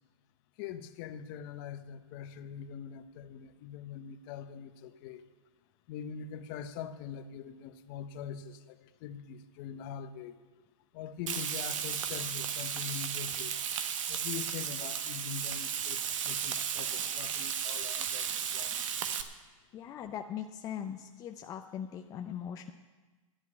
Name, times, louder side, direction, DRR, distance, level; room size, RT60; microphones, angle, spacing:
voice 1, 0.6-5.3 5.9-10.4 10.9-13.5 14.1-18.9, left 8 dB, 40° left, 10 dB, 0.8 m, -43 dB
Frying (food), 11.3-19.2, right 8 dB, 65° right, 1.1 m, -34 dB
voice 2, 19.7-22.7, left 9 dB, 20° left, 5 dB, 0.5 m, -40 dB
11.0 x 8.1 x 8.5 m, 1.3 s
hypercardioid pair, 135°, 18 cm